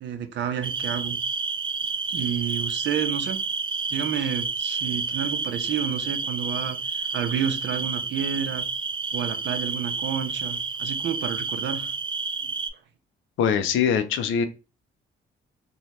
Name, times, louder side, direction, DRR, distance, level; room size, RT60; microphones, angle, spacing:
voice 1, 0.0-1.2 2.1-3.4 3.9-8.6 9.1-11.9 12.4-12.5, right 8 dB, 65° right, 8 dB, 0.6 m, -30 dB
sound 1, 0.6-12.7, right 4 dB, 25° right, 0.4 m, -30 dB
voice 2, 13.4-14.4, left 7 dB, 80° left, 10 dB, 0.5 m, -22 dB
2.7 x 2.2 x 3.1 m, 0.30 s
cardioid pair, 90°, 20 cm